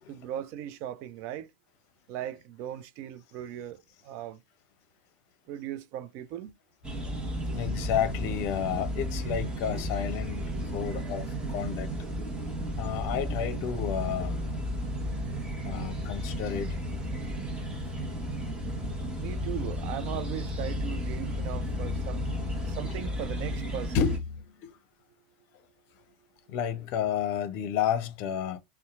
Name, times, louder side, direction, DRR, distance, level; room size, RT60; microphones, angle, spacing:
voice 1, 0.1-1.5 2.1-4.4 5.5-6.5 19.2-22.2 22.7-24.0, right 11 dB, 50° right, 0.4 m, -38 dB
sound 1, 6.8-24.2, equal, 20° right, 1.1 m, -33 dB
voice 2, 7.0-10.4 10.7-11.9 12.8-14.4 15.6-16.8 23.9-24.7 26.5-28.6, left 8 dB, 55° left, 0.6 m, -31 dB
2.7 x 2.2 x 2.4 m
hypercardioid pair, 90°, 5 cm